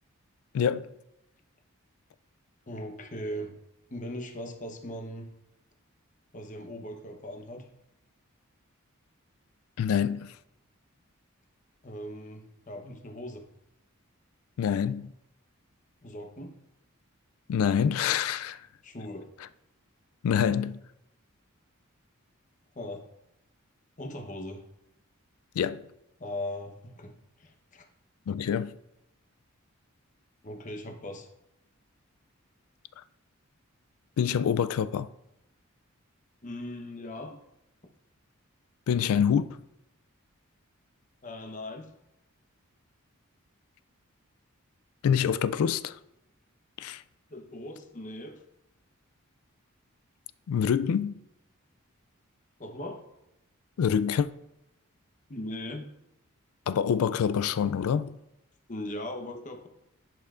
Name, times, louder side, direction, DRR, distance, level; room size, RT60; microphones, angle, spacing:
voice 1, 0.5-0.9 9.8-10.4 14.6-15.1 17.5-18.7 20.2-20.8 25.5-25.9 28.3-28.7 33.0-33.1 34.2-35.1 38.9-39.6 45.0-46.0 46.8-47.0 50.5-51.2 53.8-54.3 56.7-58.2, left 8 dB, 80° left, 0.3 m, -26 dB
voice 2, 2.7-3.5 3.9-5.3 6.3-7.7 11.8-13.4 16.0-16.5 18.8-19.3 22.7-23.0 24.0-24.7 26.2-27.8 30.4-31.3 36.4-37.4 41.2-41.9 47.3-48.4 52.6-53.0 55.3-55.9 58.7-59.7, left 1 dB, 35° left, 0.9 m, -39 dB
10.5 x 5.5 x 2.5 m
head